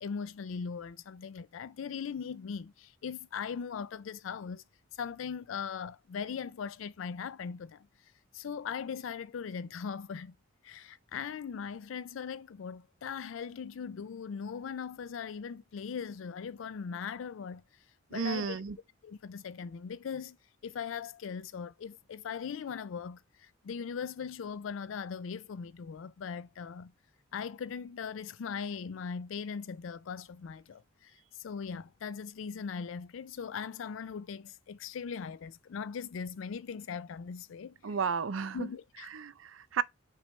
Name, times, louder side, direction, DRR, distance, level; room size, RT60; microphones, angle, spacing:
voice 1, 0.0-4.6 4.9-10.3 10.6-17.8 18.1-18.6 19.0-20.4 20.6-26.9 27.3-38.0 38.5-39.1, left 6 dB, 75° left, 0.4 m, -40 dB
voice 2, 18.1-18.8 37.8-38.7 39.1-39.8, right 6 dB, 80° right, 0.5 m, -33 dB
6.0 x 4.5 x 4.3 m
head